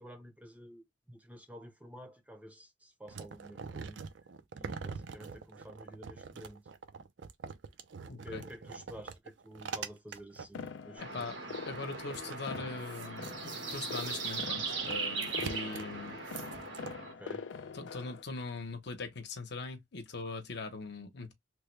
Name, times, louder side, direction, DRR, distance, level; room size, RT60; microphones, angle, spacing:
voice 1, 0.0-4.0 4.6-6.7 8.1-11.3 17.0-17.5, equal, 10° right, 0.6 m, -50 dB
sound 1, 3.1-10.7 11.2-11.3 11.5-16.9, right 5 dB, 70° right, 0.5 m, -44 dB
voice 2, 8.1-8.4 11.0-11.4 11.6-16.2 17.7-21.3, left 3 dB, 65° left, 0.9 m, -41 dB
sound 2, 10.5-18.2, left 5 dB, 80° left, 0.4 m, -45 dB
sound 3, 11.0-17.1, right 4 dB, 90° right, 1.4 m, -39 dB
3.3 x 2.2 x 3.1 m
head